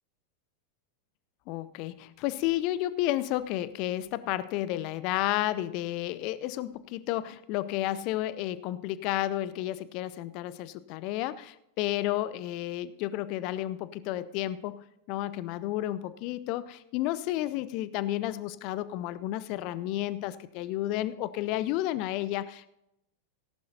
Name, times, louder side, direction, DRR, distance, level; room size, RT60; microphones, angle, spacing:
voice 1, 1.5-22.7, left 14 dB, 45° left, 17 dB, 0.6 m, -32 dB
18.0 x 11.5 x 2.8 m, 0.84 s
figure-of-eight pair, 90°, 0 cm